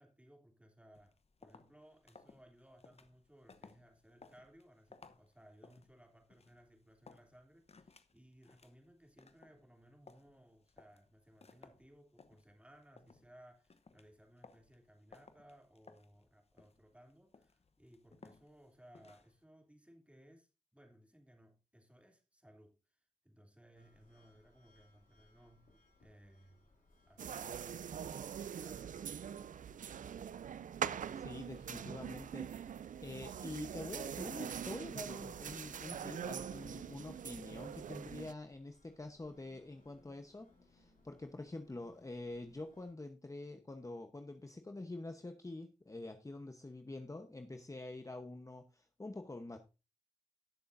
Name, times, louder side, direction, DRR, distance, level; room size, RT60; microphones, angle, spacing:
voice 1, 0.0-26.7 27.1-29.0, equal, 10° right, 3.0 m, -62 dB
sound 1, 0.9-19.4, left 4 dB, 50° left, 0.9 m, -62 dB
sound 2, 23.7-42.9, left 2 dB, 90° left, 3.5 m, -70 dB
sound 3, 27.2-38.3, right 8 dB, 70° right, 0.4 m, -43 dB
voice 2, 31.1-32.5 33.0-49.6, left 2 dB, 25° left, 1.0 m, -46 dB
18.0 x 6.8 x 2.7 m
cardioid pair, 60°, 14 cm